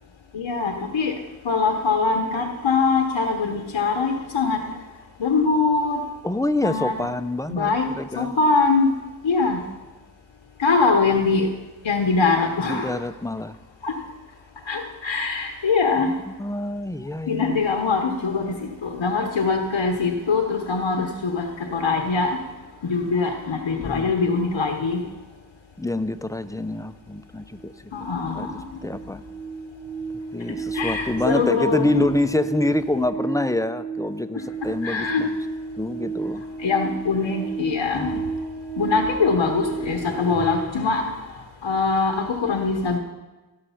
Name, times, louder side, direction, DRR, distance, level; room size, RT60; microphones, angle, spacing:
voice 1, 0.3-1.1 1.4-4.6 5.2-6.0 6.6-6.9 7.5-7.9 8.2-8.9 9.2-9.6 10.6-11.5 11.8-13.0 13.8-13.9 14.7-16.1 17.3-22.4 22.8-25.0 27.9-28.5 30.7-32.0 34.8-35.3 36.6-38.2 38.8-41.0 41.6-43.0, left 4 dB, 85° left, 4 dB, 1.1 m, -22 dB
voice 2, 6.2-8.3 12.6-13.6 16.0-17.7 23.8-24.1 25.8-28.1 28.3-28.5 28.8-29.2 30.3-35.3 35.8-36.4 37.9-38.2, left 1 dB, 10° left, 12 dB, 0.6 m, -26 dB
sound 1, 27.1-27.2 27.5-40.7, right 4 dB, 55° right, 1.3 m, -33 dB
16.5 x 6.5 x 5.8 m, 1.2 s
cardioid pair, 45°, 45 cm